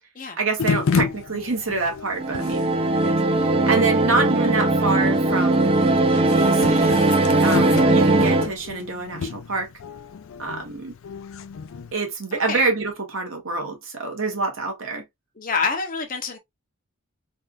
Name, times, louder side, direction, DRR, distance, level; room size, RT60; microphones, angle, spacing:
voice 1, 0.4-3.2 3.7-5.7 6.3-7.0 7.4-9.7 10.4-10.9 11.9-15.0, right 3 dB, 65° right, 1.3 m, -26 dB
sound 1, 0.6-11.9, left 5 dB, 70° left, 0.4 m, -31 dB
sound 2, 2.2-8.5, right 2 dB, 25° right, 0.4 m, -19 dB
voice 2, 12.3-12.7 15.4-16.4, left 5 dB, 40° left, 0.7 m, -27 dB
3.4 x 2.4 x 2.5 m
head